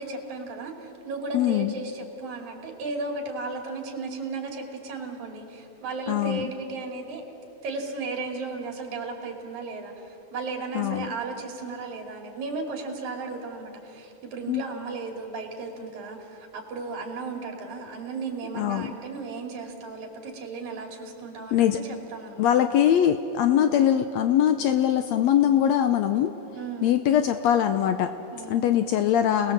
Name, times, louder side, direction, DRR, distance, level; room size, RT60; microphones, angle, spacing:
voice 1, 0.0-7.2 7.6-22.5 23.5-23.8 26.5-26.9 28.3-28.7, right 3 dB, 75° right, 2 dB, 4.0 m, -35 dB
voice 2, 1.3-1.7 6.1-6.5 10.8-11.1 14.5-14.6 18.5-18.9 21.5-21.8 22.4-26.3 26.8-28.1 28.5-29.5, left 10 dB, 75° left, 9 dB, 1.8 m, -22 dB
28.5 x 19.5 x 7.5 m, 2.9 s
omnidirectional pair, 3.4 m